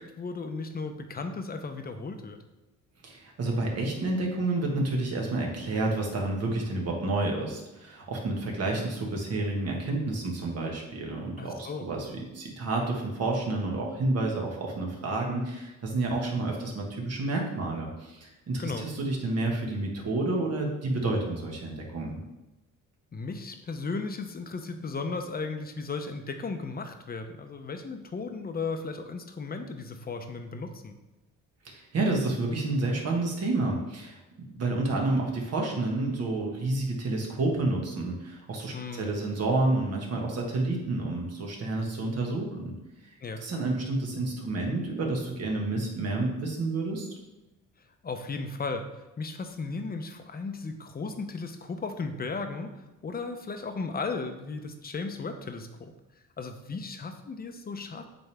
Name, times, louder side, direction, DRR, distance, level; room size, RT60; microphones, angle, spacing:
voice 1, 0.0-2.4 11.4-11.9 18.6-18.8 23.1-31.0 38.7-39.0 43.2-43.4 48.0-48.8 49.2-55.9 56.4-58.0, left 4 dB, 30° left, 6 dB, 0.8 m, -35 dB
voice 2, 3.0-22.2 31.6-34.2 34.6-42.7 43.4-47.1, right 2 dB, 55° right, 0 dB, 1.6 m, -29 dB
7.9 x 3.5 x 3.4 m, 1.0 s
cardioid pair, 90°, 30 cm